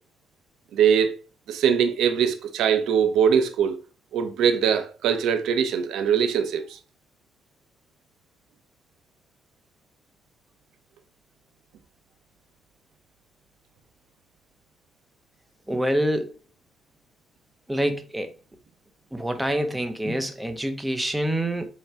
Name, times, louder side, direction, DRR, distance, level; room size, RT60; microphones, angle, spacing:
voice 1, 0.7-1.2 1.5-3.7 4.1-6.8, right 7 dB, 80° right, 1.1 m, -22 dB
voice 2, 15.7-16.3 17.7-18.3 19.1-21.7, right 1 dB, 5° right, 1.2 m, -26 dB
7.9 x 3.3 x 4.5 m
cardioid pair, 90°, 0 cm